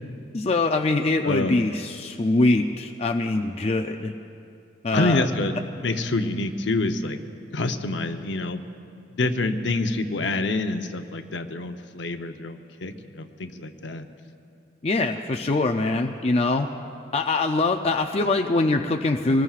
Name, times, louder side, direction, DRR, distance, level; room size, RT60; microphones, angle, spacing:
voice 1, 0.3-4.1 4.8-5.3 14.8-16.7 17.1-19.4, left 2 dB, 35° left, 4 dB, 0.5 m, -23 dB
voice 2, 1.2-1.7 4.9-5.5 5.8-7.2 7.5-8.6 9.1-14.1, left 2 dB, 65° left, 6 dB, 0.8 m, -27 dB
25.0 x 19.5 x 2.4 m, 2.6 s
head